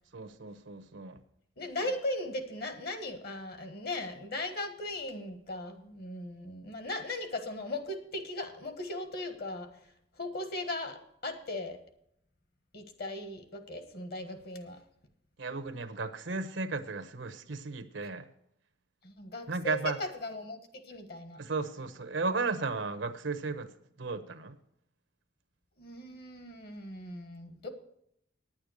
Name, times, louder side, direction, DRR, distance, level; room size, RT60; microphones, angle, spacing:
voice 1, 0.1-1.2 15.4-18.3 19.5-20.0 21.4-23.7 24.0-24.6, right 3 dB, 75° right, 9 dB, 0.9 m, -34 dB
voice 2, 1.6-9.7 10.2-11.8 12.7-14.8 19.0-21.4 25.8-27.7, left 2 dB, 50° left, 8 dB, 1.4 m, -38 dB
9.8 x 8.8 x 6.5 m, 0.74 s
head